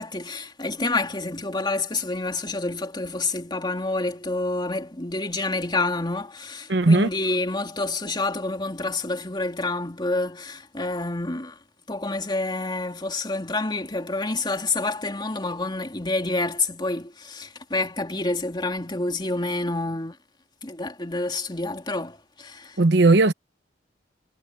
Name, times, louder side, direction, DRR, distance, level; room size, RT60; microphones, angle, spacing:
voice 1, 0.0-11.6 11.9-20.2 20.6-22.8, left 2 dB, 25° left, 2.9 m, -28 dB
voice 2, 6.7-7.1 22.8-23.3, right 2 dB, 70° right, 0.9 m, -17 dB
head